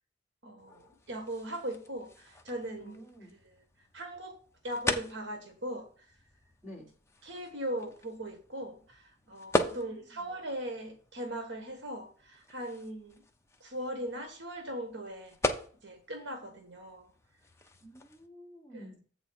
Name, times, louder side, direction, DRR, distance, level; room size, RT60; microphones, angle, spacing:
voice 1, 0.4-3.0 3.9-4.3 4.6-5.9 7.2-13.2 13.6-15.5 15.8-17.1 18.7-19.0, right 1 dB, 65° right, 4 dB, 1.2 m, -39 dB
sound 1, 0.6-18.3, left 2 dB, 15° left, 0.7 m, -40 dB
voice 2, 2.8-3.3 6.6-6.9 9.6-10.2 17.8-19.0, equal, 5° right, -5 dB, 3.4 m, -50 dB
8.0 x 3.9 x 6.1 m, 0.43 s
head